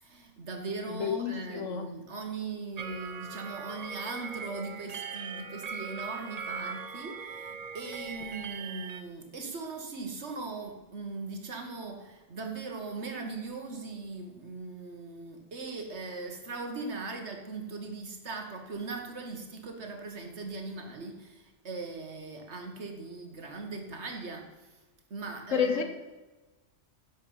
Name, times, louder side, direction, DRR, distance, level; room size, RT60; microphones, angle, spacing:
voice 1, 0.0-24.8 25.1-25.8, right 3 dB, 65° right, 4 dB, 1.9 m, -39 dB
voice 2, 0.9-2.0 25.5-25.8, left 7 dB, 90° left, 7 dB, 1.3 m, -30 dB
sound 1, 2.8-9.0, right 6 dB, 40° right, 0.7 m, -40 dB
11.0 x 7.6 x 5.6 m, 1.2 s
omnidirectional pair, 1.3 m